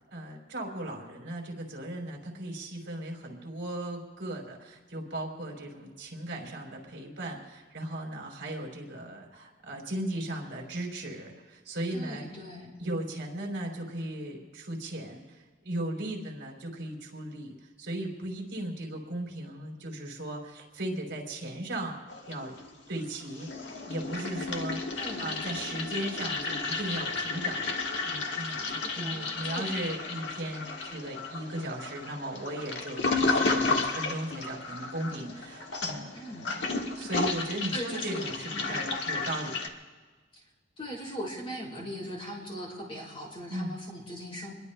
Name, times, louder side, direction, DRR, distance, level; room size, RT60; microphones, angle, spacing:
voice 1, 0.1-12.2 12.8-17.5 17.8-22.0 22.3-22.6 22.9-36.0 37.0-39.7 43.5-43.7, right 1 dB, 60° right, 0 dB, 3.7 m, -37 dB
voice 2, 11.9-12.7 24.9-25.3 28.7-29.7 36.1-36.5 37.7-38.8 40.3-40.4 40.8-44.5, equal, 30° left, -4 dB, 4.4 m, -40 dB
Toilet flush, 22.1-22.9 23.2-39.7, left 3 dB, 65° left, 1.6 m, -33 dB
27.0 x 21.5 x 2.3 m, 1.4 s
head